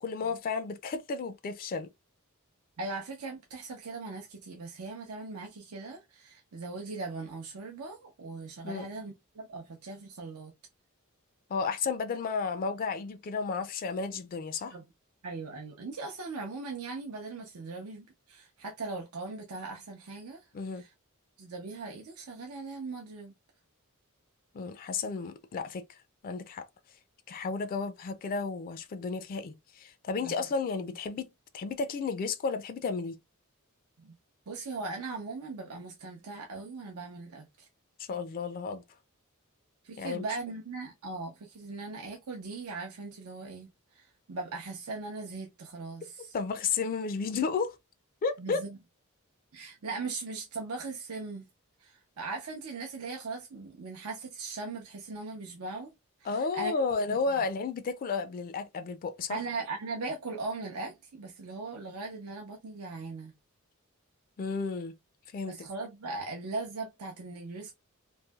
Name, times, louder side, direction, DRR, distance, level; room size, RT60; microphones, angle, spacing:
voice 1, 0.0-1.9 8.6-8.9 11.5-14.8 20.5-20.8 24.5-25.8 26.2-26.7 27.3-33.2 38.1-38.8 40.0-40.2 46.3-47.8 48.2-48.6 56.3-59.4 64.4-64.9 65.3-65.6, left 4 dB, 40° left, 0.3 m, -32 dB
voice 2, 2.8-10.5 14.7-14.8 15.2-20.4 20.7-20.9 21.4-23.3 30.2-30.3 34.0-34.1 34.5-37.7 39.8-46.4 48.4-48.8 49.5-51.5 51.8-55.9 56.2-56.7 57.1-57.5 59.3-63.3 65.5-67.7, right 3 dB, 90° right, 0.6 m, -39 dB
3.1 x 2.6 x 2.2 m
head